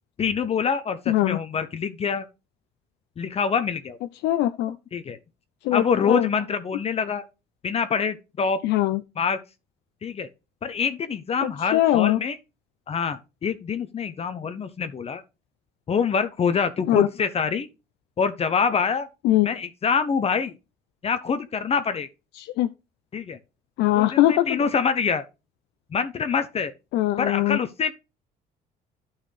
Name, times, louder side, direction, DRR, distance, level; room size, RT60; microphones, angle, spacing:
voice 1, 0.2-2.3 3.2-4.0 4.7-5.2 5.7-7.2 7.6-8.6 9.2-9.4 10.0-10.3 10.6-12.4 12.9-15.2 15.9-17.7 18.2-19.1 19.4-20.5 21.0-22.1 23.1-23.4 23.9-25.2 25.9-26.7 27.2-27.9, left 6 dB, 35° left, 0.9 m, -25 dB
voice 2, 1.1-1.4 4.2-4.7 5.6-6.2 8.6-9.0 11.7-12.2 16.9-17.1 19.2-19.5 22.4-22.7 23.8-24.7 26.9-27.6, left 14 dB, 85° left, 0.6 m, -21 dB
11.0 x 5.7 x 3.3 m
cardioid pair, 110°, 17 cm